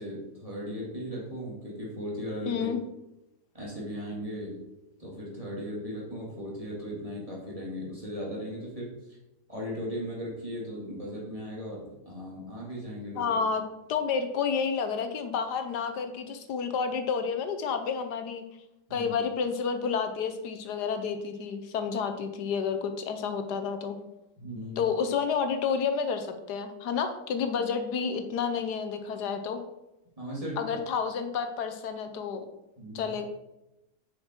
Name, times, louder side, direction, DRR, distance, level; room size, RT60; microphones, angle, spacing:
voice 1, 0.0-2.7 3.5-4.6 5.0-8.9 9.5-13.4 18.9-19.1 24.4-24.9 30.2-30.6 32.8-33.1, equal, 20° right, -4 dB, 2.2 m, -37 dB
voice 2, 2.5-2.8 13.2-13.6 13.9-18.4 18.9-24.0 24.8-29.6 30.6-32.4 32.9-33.3, left 6 dB, 75° left, 7 dB, 1.3 m, -30 dB
6.7 x 5.8 x 4.4 m, 0.91 s
omnidirectional pair, 1.8 m